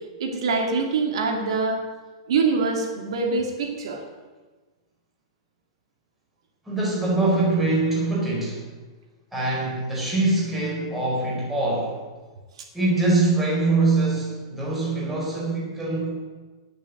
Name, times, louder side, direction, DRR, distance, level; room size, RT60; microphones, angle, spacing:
voice 1, 0.2-1.8 2.3-4.0, right 4 dB, 70° right, 2 dB, 2.7 m, -24 dB
voice 2, 6.7-8.7 9.3-12.0 12.7-16.1, right 2 dB, 5° right, -5 dB, 4.5 m, -23 dB
19.0 x 7.1 x 8.1 m, 1.3 s
supercardioid pair, 170°, 3 cm